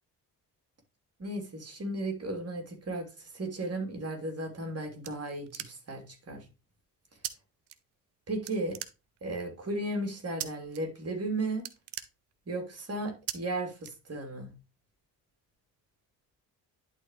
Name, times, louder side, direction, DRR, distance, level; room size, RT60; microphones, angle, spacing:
voice 1, 1.2-6.4 8.3-8.8 9.2-11.6 12.5-14.5, right 2 dB, 30° right, 2.9 m, -35 dB
sound 1, 4.4-6.1 7.2-7.3 7.7-8.2 8.5-9.4 10.4-10.8 11.1-11.3 11.5-12.7 13.3-13.4 13.8-14.5, right 13 dB, 55° right, 0.8 m, -40 dB
11.0 x 4.4 x 3.1 m
hypercardioid pair, 50°, 50 cm